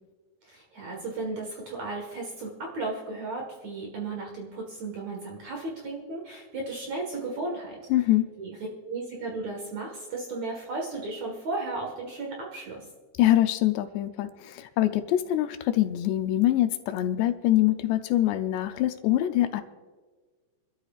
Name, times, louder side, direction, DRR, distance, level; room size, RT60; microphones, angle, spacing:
voice 1, 0.4-7.8 8.4-8.6 8.8-12.8, right 3 dB, 55° right, 0 dB, 2.2 m, -35 dB
voice 2, 7.9-8.3 13.2-19.6, left 13 dB, 80° left, 8 dB, 2.7 m, -24 dB
26.5 x 12.5 x 2.4 m, 1.4 s
omnidirectional pair, 5.0 m